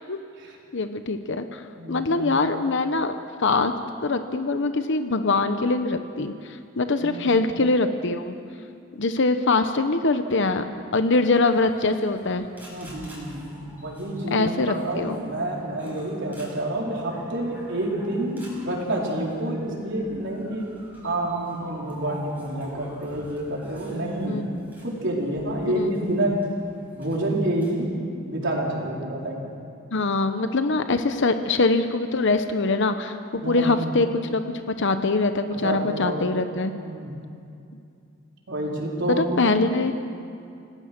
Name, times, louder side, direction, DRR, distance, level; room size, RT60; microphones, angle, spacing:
voice 1, 0.7-1.6 1.9-3.7 4.0-8.4 9.0-10.6 10.9-12.4 14.3-15.2 24.3-24.6 25.7-25.9 29.9-34.4 34.7-36.7 39.1-39.9, left 3 dB, 60° left, 9 dB, 0.9 m, -23 dB
voice 2, 1.7-2.3 7.0-7.3 12.7-20.7 21.0-24.5 24.8-26.4 27.0-27.9 28.2-29.5 33.4-33.8 35.5-36.3 36.7-37.2 38.5-39.4, right 1 dB, 60° right, -2 dB, 4.5 m, -28 dB
sound 1, 11.5-27.7, equal, 10° right, 6.1 m, -47 dB
28.0 x 18.0 x 6.1 m, 2.5 s
head